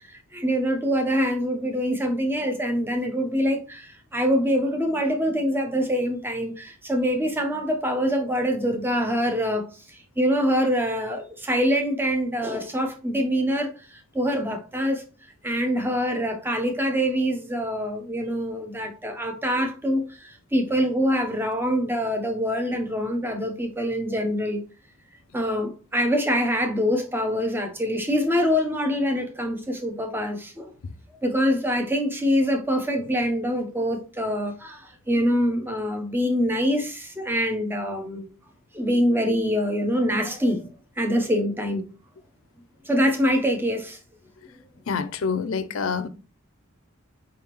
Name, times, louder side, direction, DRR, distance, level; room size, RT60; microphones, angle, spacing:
voice 1, 0.1-15.0 15.4-24.6 25.3-30.7 31.2-38.3 38.7-40.6 41.0-41.8 42.8-44.0, equal, 10° right, 0.7 m, -25 dB
voice 2, 44.9-46.1, left 5 dB, 70° left, 0.5 m, -26 dB
4.9 x 3.5 x 2.9 m
head